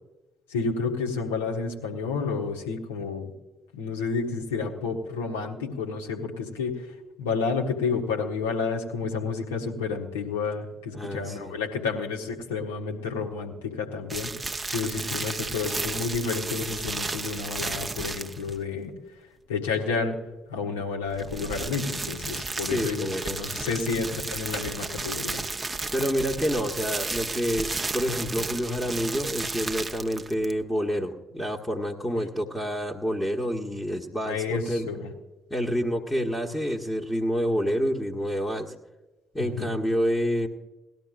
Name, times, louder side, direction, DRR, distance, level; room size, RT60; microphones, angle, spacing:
voice 1, 0.5-3.3 3.7-6.9 7.2-14.3 14.7-18.9 19.5-20.2 20.5-25.4 34.3-35.1 39.4-39.8, left 5 dB, 75° left, 1 dB, 1.5 m, -30 dB
voice 2, 10.9-11.6 22.6-23.6 25.9-34.9 35.5-38.7 39.3-40.5, equal, 10° left, -1 dB, 1.3 m, -28 dB
sound 1, 14.1-18.6 21.0-30.6, right 3 dB, 20° right, 0.8 m, -33 dB
19.0 x 12.5 x 2.5 m, 1.1 s
figure-of-eight pair, 40°, 0 cm